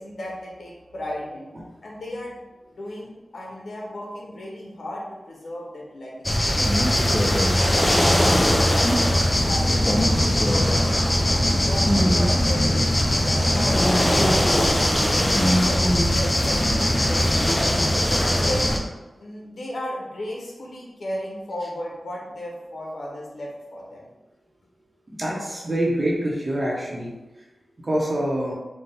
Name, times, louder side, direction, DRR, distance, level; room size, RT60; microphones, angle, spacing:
voice 1, 0.0-1.5 1.8-2.4 2.7-6.6 7.0-10.9 11.3-15.3 15.7-17.5 17.9-18.6 19.2-24.1, left 1 dB, 80° left, -3 dB, 0.8 m, -35 dB
sound 1, 6.2-18.8, left 1 dB, 20° left, 0.5 m, -20 dB
voice 2, 25.2-27.1 27.8-28.5, right 1 dB, 40° right, -4 dB, 0.8 m, -25 dB
4.2 x 2.2 x 3.4 m, 1.1 s
wide cardioid pair, 75°, 0 cm